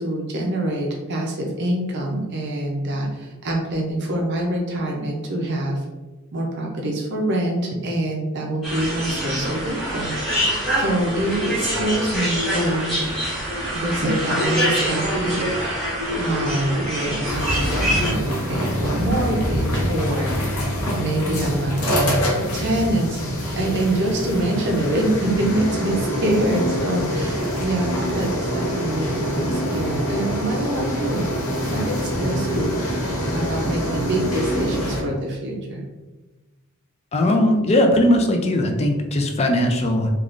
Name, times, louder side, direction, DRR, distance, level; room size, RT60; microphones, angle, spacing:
voice 1, 0.0-5.9 6.3-10.1 10.8-13.0 13.7-15.5 16.2-20.4 20.9-23.3 23.5-31.2 31.7-32.9 33.3-35.8, right 1 dB, 55° right, 0 dB, 0.5 m, -25 dB
sound 1, 8.6-18.1, equal, ahead, 1.1 m, -25 dB
sound 2, 17.2-35.0, equal, 90° left, 0.8 m, -25 dB
voice 2, 37.1-40.1, left 1 dB, 30° left, 3 dB, 0.4 m, -19 dB
3.5 x 2.4 x 2.4 m, 1.2 s
head